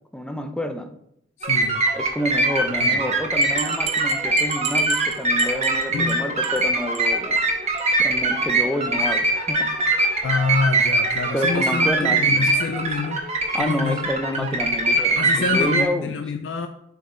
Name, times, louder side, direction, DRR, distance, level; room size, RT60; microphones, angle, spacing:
voice 1, 0.1-0.9 2.0-7.4 8.0-9.8 11.3-12.5 13.5-16.2, equal, 5° left, 7 dB, 0.4 m, -29 dB
voice 2, 1.4-1.8 2.8-3.0 5.9-6.2 10.2-13.2 13.6-14.6 15.2-16.7, left 4 dB, 70° left, 6 dB, 0.4 m, -27 dB
sound 1, 1.4-15.9, right 2 dB, 35° right, 1.0 m, -22 dB
sound 2, 3.4-6.1 6.4-6.7 6.9-7.0 7.4-7.5 7.8-7.9, right 9 dB, 80° right, 0.7 m, -31 dB
6.9 x 3.8 x 3.7 m, 0.76 s
head